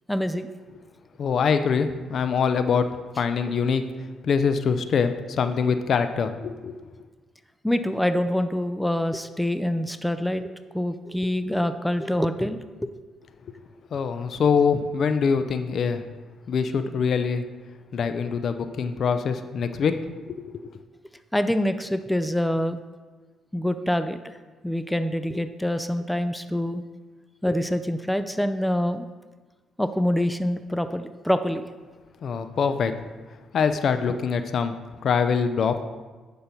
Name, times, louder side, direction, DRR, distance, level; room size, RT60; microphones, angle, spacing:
voice 1, 0.1-0.5 7.6-12.9 21.3-22.8 23.5-24.3 24.6-26.8 27.4-29.1 29.8-31.7, left 1 dB, 5° left, 10 dB, 0.5 m, -25 dB
voice 2, 1.2-3.8 4.2-6.7 13.5-13.6 13.9-16.0 16.5-17.4 17.9-19.9 20.3-20.6 32.2-32.9 33.5-34.7 35.0-35.8, left 6 dB, 60° left, 10 dB, 0.6 m, -24 dB
10.5 x 5.5 x 4.5 m, 1.3 s
cardioid pair, 90°, 0 cm